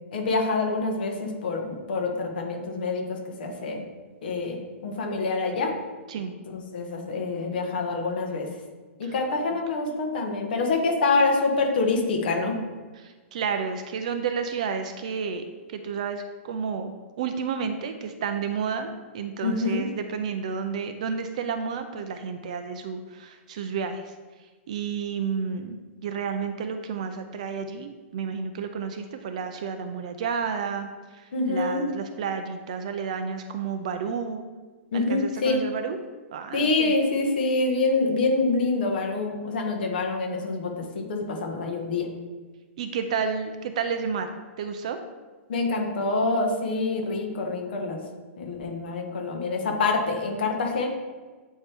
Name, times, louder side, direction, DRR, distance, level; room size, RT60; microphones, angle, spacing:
voice 1, 0.1-3.8 4.2-5.7 6.5-8.5 9.0-12.6 19.4-19.9 31.3-31.9 34.9-35.6 36.5-42.1 45.5-48.0 48.4-50.9, left 3 dB, 45° left, 2 dB, 1.1 m, -26 dB
voice 2, 13.0-15.4 15.7-24.1 24.4-25.8 26.0-34.4 34.9-36.0 36.3-36.9 42.8-44.3 44.6-45.0, right 6 dB, 30° right, 7 dB, 0.3 m, -31 dB
8.2 x 4.4 x 3.4 m, 1.4 s
hypercardioid pair, 180°, 7 cm